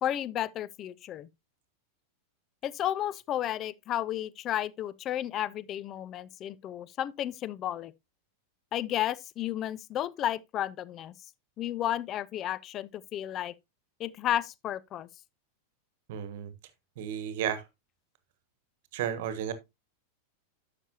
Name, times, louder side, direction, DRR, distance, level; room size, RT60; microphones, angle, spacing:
voice 1, 0.0-1.3 2.6-7.9 8.7-11.1 11.6-13.5 14.0-15.1, left 12 dB, 30° left, 0.5 m, -32 dB
voice 2, 16.1-16.5 17.0-17.6 18.9-19.5, right 9 dB, 50° right, 1.3 m, -33 dB
11.5 x 6.8 x 2.8 m
figure-of-eight pair, 90°, 0 cm